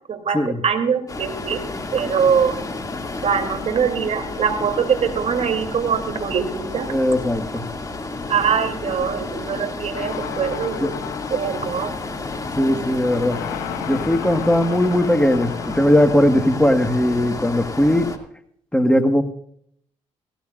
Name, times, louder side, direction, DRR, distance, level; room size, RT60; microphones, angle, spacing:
voice 1, 0.1-1.6 1.9-2.6 3.2-6.9 8.3-11.9, right 7 dB, 55° right, 6 dB, 3.1 m, -23 dB
sound 1, 1.1-18.2, left 3 dB, 25° left, 2.4 m, -31 dB
voice 2, 6.9-7.6 10.8-11.0 12.5-13.4 13.9-18.1 18.7-19.2, left 1 dB, 5° left, 7 dB, 1.6 m, -18 dB
sound 2, 9.9-17.5, left 9 dB, 90° left, 1.6 m, -34 dB
17.5 x 16.5 x 2.5 m, 0.65 s
supercardioid pair, 65°, 13 cm